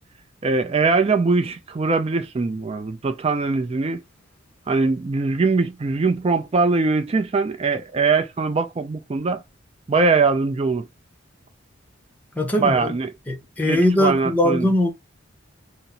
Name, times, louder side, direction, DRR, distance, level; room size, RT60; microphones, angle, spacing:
voice 1, 0.4-4.0 4.7-9.4 9.9-10.9 12.6-13.1 13.6-14.7, right 4 dB, 30° right, 0.4 m, -21 dB
voice 2, 12.3-12.9 13.3-14.9, left 1 dB, 10° left, 0.8 m, -20 dB
4.1 x 2.0 x 3.9 m
head